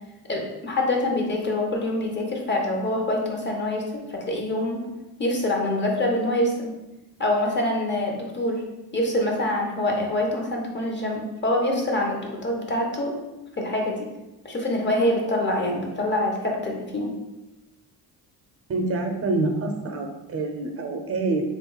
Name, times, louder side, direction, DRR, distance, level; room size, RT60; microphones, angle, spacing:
voice 1, 0.3-4.9 5.2-6.7 7.2-8.6 8.9-13.2 13.6-14.1 14.4-17.1, left 1 dB, 30° left, 0 dB, 0.9 m, -25 dB
voice 2, 18.7-21.4, right 3 dB, 35° right, 3 dB, 0.7 m, -26 dB
3.8 x 2.5 x 3.9 m, 0.99 s
cardioid pair, 100°, 39 cm